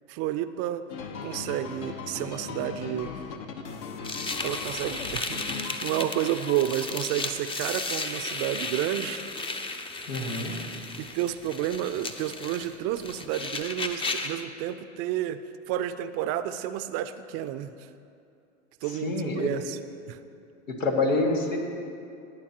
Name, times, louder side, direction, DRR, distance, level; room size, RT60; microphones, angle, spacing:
voice 1, 0.1-0.8 1.2-3.1 4.4-9.2 11.0-17.9 18.8-19.8 20.1-20.2, right 12 dB, 40° right, 12 dB, 0.5 m, -31 dB
sound 1, 0.9-6.9, left 5 dB, 55° left, 1.1 m, -39 dB
sound 2, 4.0-14.4, left 3 dB, 15° left, 0.6 m, -34 dB
voice 2, 10.1-10.5 19.0-19.5 20.8-21.6, left 2 dB, 85° left, 1 dB, 1.9 m, -26 dB
18.0 x 9.2 x 2.9 m, 2.6 s
hypercardioid pair, 100°, 38 cm